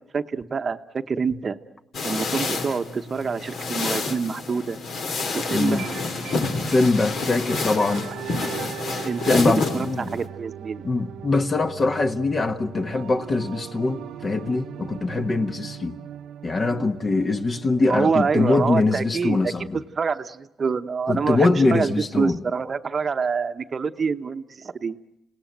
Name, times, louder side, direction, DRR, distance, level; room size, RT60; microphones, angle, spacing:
voice 1, 0.0-1.6 2.0-4.8 5.3-5.9 9.0-10.8 17.8-25.0, right 5 dB, 40° right, 0.9 m, -26 dB
sound 1, 1.9-10.3, left 3 dB, 60° left, 2.3 m, -29 dB
voice 2, 5.5-5.8 6.7-8.1 9.2-10.2 10.8-16.0 16.4-19.8 21.1-22.4, left 3 dB, 35° left, 1.4 m, -23 dB
sound 2, 5.7-19.6, right 10 dB, 75° right, 0.9 m, -39 dB
29.0 x 18.0 x 9.1 m
cardioid pair, 90°, 0 cm